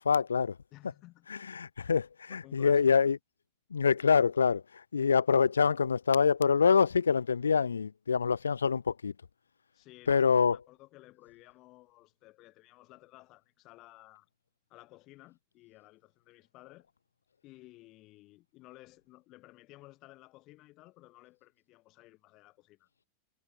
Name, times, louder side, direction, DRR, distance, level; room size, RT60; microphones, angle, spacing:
voice 1, 0.0-0.6 1.3-3.2 3.7-4.6 4.9-9.1 10.1-10.6, left 6 dB, 75° left, 1.0 m, -25 dB
voice 2, 0.7-1.3 2.3-3.1 9.7-14.3 14.7-16.9 17.4-22.9, left 19 dB, 40° left, 5.6 m, -56 dB
figure-of-eight pair, 90°, 0 cm